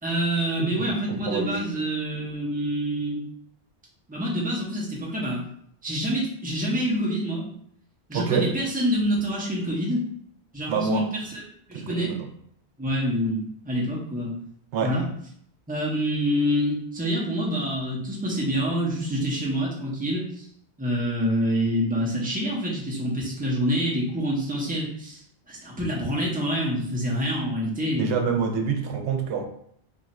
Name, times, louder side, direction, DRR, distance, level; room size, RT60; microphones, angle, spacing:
voice 1, 0.0-3.2 4.1-5.4 5.8-7.5 8.1-10.0 10.5-11.4 11.7-12.1 12.8-14.4 14.8-15.0 15.7-20.5 20.8-28.2, equal, 10° right, -4 dB, 0.7 m, -27 dB
voice 2, 1.1-1.6 8.1-8.5 10.7-11.1 11.7-12.3 14.7-14.9 27.9-29.4, right 5 dB, 85° right, 3 dB, 0.9 m, -26 dB
2.6 x 2.4 x 4.1 m, 0.68 s
omnidirectional pair, 1.1 m